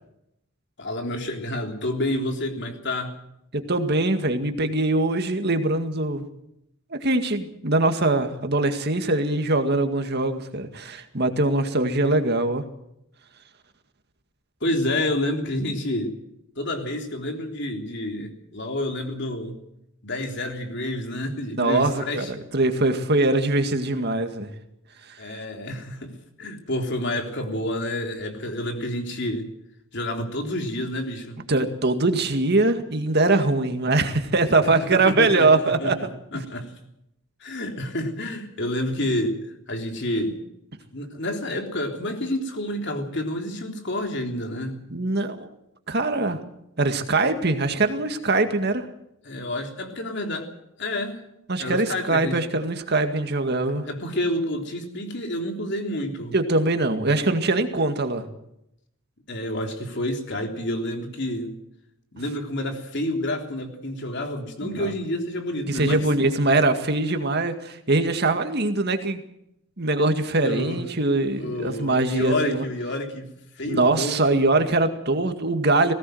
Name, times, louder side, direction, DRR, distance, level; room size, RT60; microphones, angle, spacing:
voice 1, 0.8-3.1 14.6-16.1 16.6-19.6 20.0-22.3 25.2-26.1 26.4-29.5 29.9-31.4 34.8-36.7 37.4-39.4 39.7-40.4 40.9-44.8 49.2-50.5 50.8-51.2 51.6-52.4 53.8-56.4 59.3-61.5 62.1-66.1 70.4-70.8 71.3-73.3 73.6-74.2, left 1 dB, 55° left, 4 dB, 3.5 m, -29 dB
voice 2, 3.5-6.3 6.9-12.6 21.6-24.5 31.5-36.1 36.3-36.4 44.9-45.5 45.9-46.4 46.8-48.9 51.5-53.9 56.3-58.2 64.6-64.9 65.7-69.2 69.8-72.6 73.7-75.9, right 2 dB, 50° right, 7 dB, 2.0 m, -22 dB
20.0 x 17.5 x 7.9 m, 0.80 s
head